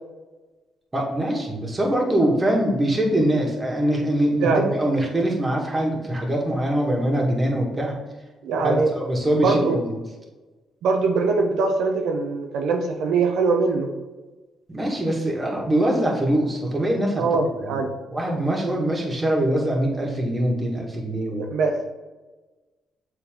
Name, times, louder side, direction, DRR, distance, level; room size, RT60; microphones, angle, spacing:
voice 1, 0.9-8.0 8.6-10.0 14.7-17.8 18.1-21.5, right 1 dB, 25° right, -1 dB, 1.8 m, -23 dB
voice 2, 4.4-4.7 8.4-8.9 9.3-9.8 10.8-13.9 17.2-17.9 21.5-21.9, right 4 dB, 80° right, 2 dB, 0.7 m, -22 dB
7.2 x 3.9 x 3.7 m, 1.2 s
cardioid pair, 90°, 0 cm